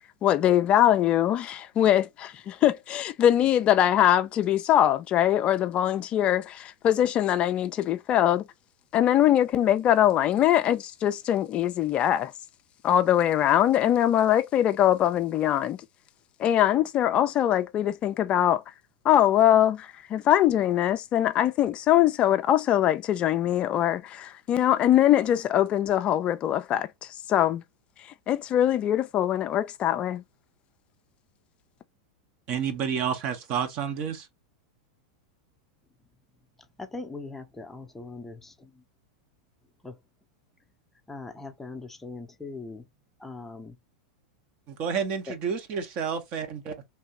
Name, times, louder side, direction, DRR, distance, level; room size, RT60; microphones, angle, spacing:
voice 1, 0.2-8.4 8.9-12.3 12.8-15.8 16.4-18.6 19.0-27.6 28.3-30.2, left 11 dB, 35° left, 0.3 m, -22 dB
voice 2, 32.5-34.3 44.7-46.5, right 7 dB, 45° right, 1.0 m, -29 dB
voice 3, 36.8-38.8 39.8-40.0 41.1-42.9 43.2-43.8 45.3-45.4, left 3 dB, 10° left, 0.7 m, -40 dB
3.2 x 2.7 x 2.9 m
hypercardioid pair, 105°, 3 cm